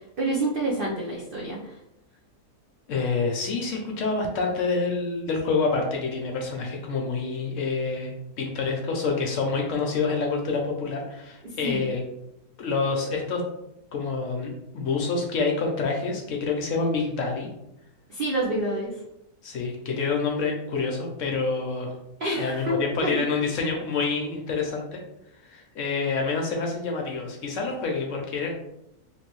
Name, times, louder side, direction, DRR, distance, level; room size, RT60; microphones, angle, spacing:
voice 1, 0.2-1.8 11.4-11.9 18.1-18.9 22.2-23.1, right 1 dB, 75° right, -3 dB, 0.5 m, -28 dB
voice 2, 2.9-12.0 12.6-13.4 13.9-17.5 19.4-21.9 22.3-25.0 25.4-28.5, left 4 dB, 70° left, 1 dB, 0.8 m, -27 dB
3.2 x 2.6 x 3.0 m, 0.83 s
omnidirectional pair, 1.6 m